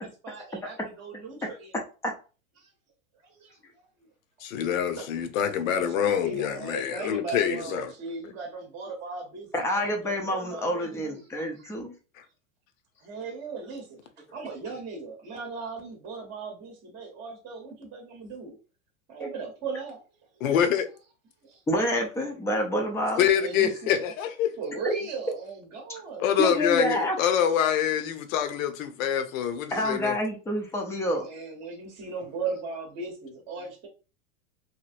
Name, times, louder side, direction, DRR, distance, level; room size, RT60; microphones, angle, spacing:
voice 1, 0.0-1.7 2.6-2.7 3.4-3.8 5.0-5.1 5.9-9.5 9.8-11.3 11.6-11.7 13.0-18.6 19.1-20.0 21.4-21.6 23.4-23.9 24.6-26.3 31.2-33.9, right 4 dB, 25° right, 0.8 m, -38 dB
voice 2, 4.4-7.9 20.4-20.9 23.2-24.5 26.2-30.1, left 9 dB, 70° left, 0.7 m, -25 dB
voice 3, 9.5-11.9 21.7-23.3 24.8-24.9 26.4-27.2 29.7-31.3, equal, 5° left, 0.4 m, -28 dB
3.0 x 2.6 x 2.5 m
hypercardioid pair, 125°, 42 cm